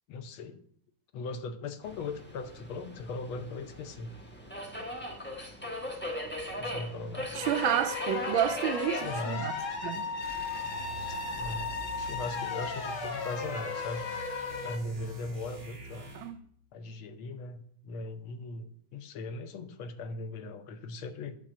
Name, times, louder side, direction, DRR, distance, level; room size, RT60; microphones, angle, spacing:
voice 1, 0.1-0.6 1.1-4.1 6.5-7.5 8.9-9.5 11.0-11.7 12.0-14.1 14.6-16.1 16.7-21.4, left 2 dB, 90° left, 1.6 m, -39 dB
Subway metro underground, 1.8-12.4, equal, 10° left, 0.8 m, -40 dB
sound 1, 7.4-14.8, left 4 dB, 45° left, 1.2 m, -36 dB
voice 2, 7.4-9.5 9.8-10.1 16.2-16.3, right 10 dB, 80° right, 1.3 m, -30 dB
sound 2, 10.2-16.4, right 1 dB, 50° right, 2.2 m, -46 dB
9.1 x 3.8 x 6.3 m
omnidirectional pair, 2.2 m